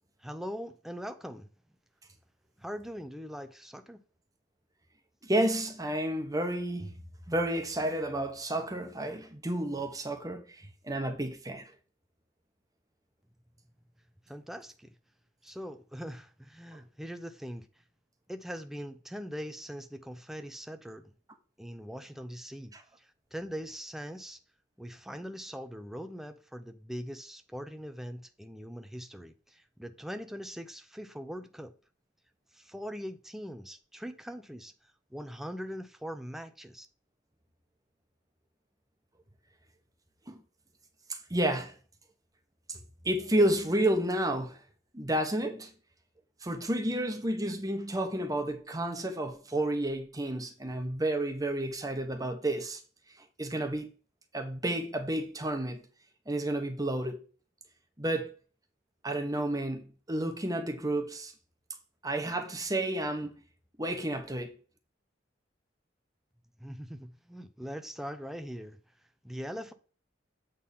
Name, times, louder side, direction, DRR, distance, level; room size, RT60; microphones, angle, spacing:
voice 1, 0.2-1.5 2.6-4.0 14.3-14.9 15.4-17.7 18.3-21.1 21.6-24.4 24.8-31.7 32.5-34.7 35.1-36.9 66.6-68.8 69.2-69.7, equal, ahead, 0.6 m, -41 dB
voice 2, 5.2-6.9 7.3-11.7 16.7-16.8 22.7-22.8 40.3-40.4 41.1-41.7 42.7-44.6 44.9-45.7 46.4-52.8 53.4-53.9 54.3-55.8 56.3-57.2 58.0-58.3 59.0-61.3 62.0-63.3 63.8-64.5, right 1 dB, 20° right, 1.2 m, -31 dB
8.4 x 3.8 x 5.5 m
head